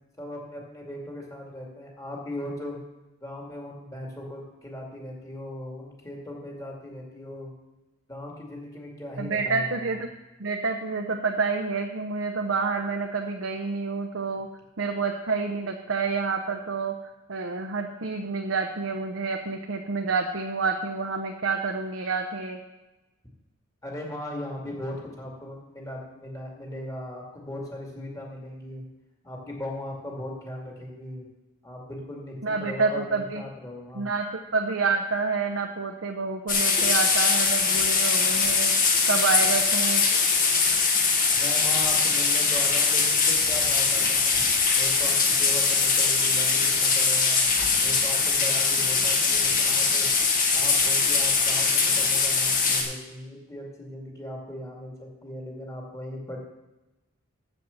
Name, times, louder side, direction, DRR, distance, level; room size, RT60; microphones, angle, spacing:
voice 1, 0.2-2.8 3.2-7.5 8.1-10.0 23.8-28.8 29.2-31.3 31.6-34.1 41.3-44.4 44.7-47.5 47.8-50.1 50.5-56.4, left 1 dB, 15° left, -2 dB, 2.3 m, -38 dB
voice 2, 9.2-10.1 10.4-14.5 14.8-16.9 17.3-22.6 32.4-33.4 33.9-38.7 39.0-40.0, right 4 dB, 70° right, 3 dB, 0.8 m, -28 dB
sound 1, 36.5-52.8, left 4 dB, 40° left, 1.6 m, -22 dB
7.8 x 7.8 x 7.2 m, 1.0 s
head